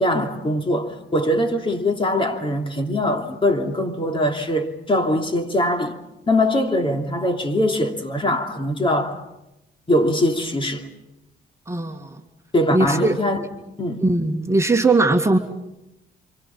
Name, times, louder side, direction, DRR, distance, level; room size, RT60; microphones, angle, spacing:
voice 1, 0.0-6.0 6.3-9.2 9.9-10.9 12.5-13.4 13.8-14.0, left 1 dB, 25° left, 2.8 m, -22 dB
voice 2, 11.7-12.2 12.7-13.5 14.0-15.4, right 2 dB, 15° right, 2.1 m, -20 dB
29.5 x 26.0 x 5.8 m
cardioid pair, 90°, 20 cm